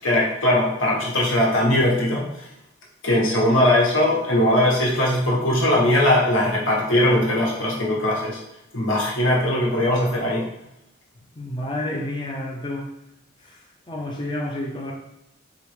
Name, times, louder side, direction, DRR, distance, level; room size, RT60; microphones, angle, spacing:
voice 1, 0.0-2.2 3.0-8.4 8.7-10.4, left 1 dB, 75° left, -4 dB, 1.3 m, -20 dB
voice 2, 11.4-12.9 13.4-14.9, left 1 dB, 25° left, -2 dB, 0.5 m, -30 dB
4.9 x 3.0 x 3.2 m, 0.82 s
head